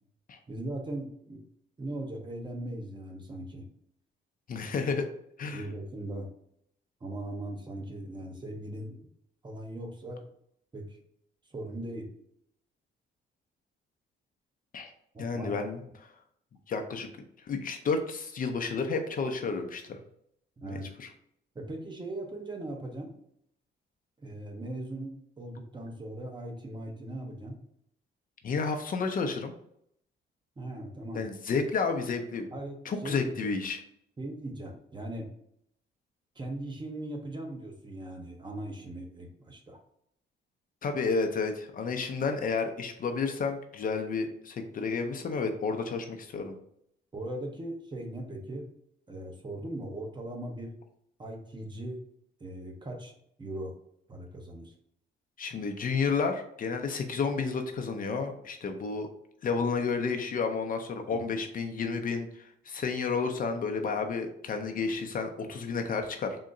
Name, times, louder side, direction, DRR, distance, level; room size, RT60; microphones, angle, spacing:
voice 1, 0.5-1.4 1.8-3.7 5.5-6.3 7.0-9.1 9.4-10.2 10.7-11.0 11.5-12.1 15.1-15.5 20.6-20.9 21.5-23.1 24.2-27.6 30.6-31.3 32.5-33.5 34.2-35.3 36.4-39.8 47.1-48.7 49.1-50.7 51.2-52.0 52.4-53.1 53.4-53.7 54.1-54.7 61.0-61.2, right 1 dB, 25° right, 3 dB, 0.8 m, -39 dB
voice 2, 4.5-5.1 5.4-5.7 14.7-14.9 15.2-16.1 16.7-17.1 17.4-20.0 20.6-21.1 28.4-29.5 31.1-32.5 32.8-33.8 40.8-46.6 55.4-59.1 59.4-66.4, left 4 dB, 45° left, 5 dB, 0.5 m, -31 dB
3.8 x 2.1 x 3.6 m, 0.72 s
cardioid pair, 90°, 20 cm